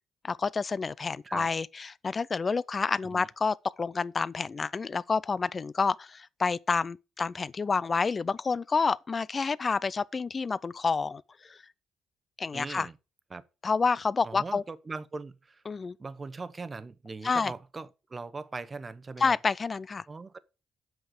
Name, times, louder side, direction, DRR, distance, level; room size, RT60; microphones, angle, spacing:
voice 1, 0.2-11.6 12.4-12.9 13.6-14.6 15.7-15.9 17.2-17.5 19.2-20.0, left 4 dB, 35° left, 0.4 m, -29 dB
voice 2, 12.5-12.9 13.3-13.4 14.2-15.6 16.0-19.4 20.1-20.4, right 3 dB, 30° right, 0.9 m, -40 dB
8.0 x 5.9 x 6.5 m
cardioid pair, 90°, 0 cm